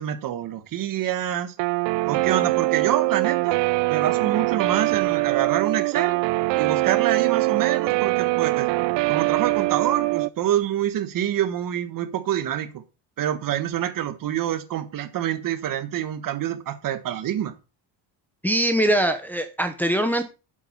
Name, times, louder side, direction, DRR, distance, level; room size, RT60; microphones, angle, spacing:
voice 1, 0.0-1.5 2.0-3.6 3.9-6.2 6.5-8.7 9.1-12.8 13.2-17.5, right 11 dB, 50° right, 10 dB, 1.5 m, -26 dB
Guitar, 1.6-10.3, right 22 dB, 85° right, 0.6 m, -23 dB
voice 2, 18.4-20.2, right 1 dB, 5° left, 5 dB, 0.8 m, -22 dB
9.0 x 7.7 x 5.5 m, 0.31 s
cardioid pair, 170°, 42 cm